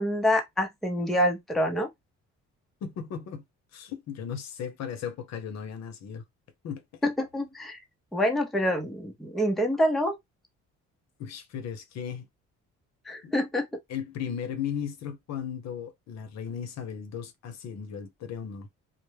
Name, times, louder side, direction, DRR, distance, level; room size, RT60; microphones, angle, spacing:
voice 1, 0.0-1.9 7.0-7.8 8.1-10.2 13.1-13.6, equal, ahead, 0.5 m, -26 dB
voice 2, 2.8-3.4 3.7-6.2 6.6-6.8 11.2-12.3 13.2-13.3 13.9-18.7, left 8 dB, 65° left, 0.7 m, -36 dB
2.1 x 2.0 x 3.2 m
cardioid pair, 100°, 29 cm